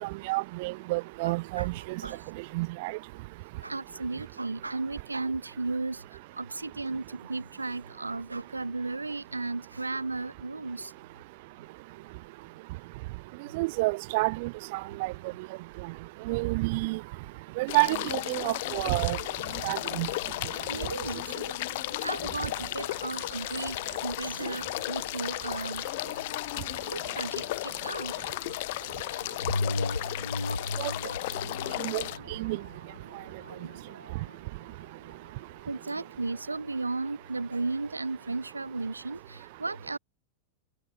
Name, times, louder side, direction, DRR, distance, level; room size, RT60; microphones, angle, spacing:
voice 1, 0.0-2.0 2.5-2.9 13.5-15.1 16.3-17.0 17.6-19.2 19.6-20.1 30.8-30.9 31.8-32.0 32.4-32.6, right 24 dB, 50° right, 4.8 m, -29 dB
voice 2, 1.2-1.7 2.0-2.3 3.6-10.9 20.7-21.6 22.0-26.1 26.9-28.4 29.0-30.8 31.3-31.8 32.3-32.4 33.2-34.2 35.6-40.0, right 3 dB, 80° right, 4.1 m, -36 dB
sound 1, 17.7-32.2, left 19 dB, 50° left, 6.9 m, -34 dB
sound 2, 29.4-34.3 34.8-34.9, left 2 dB, 80° left, 3.9 m, -35 dB
figure-of-eight pair, 90°, 0 cm